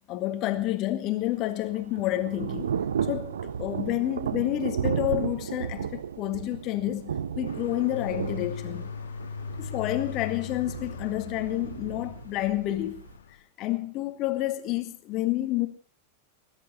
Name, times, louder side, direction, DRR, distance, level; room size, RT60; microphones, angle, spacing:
voice 1, 0.1-2.7 3.1-8.9 9.6-13.0 13.6-15.7, left 15 dB, 40° left, 2.0 m, -29 dB
Thunder / Rain, 1.2-13.2, right 8 dB, 65° right, 0.7 m, -34 dB
sound 1, 7.5-13.4, left 7 dB, 65° left, 1.9 m, -39 dB
20.0 x 11.0 x 6.0 m
figure-of-eight pair, 90°, 0 cm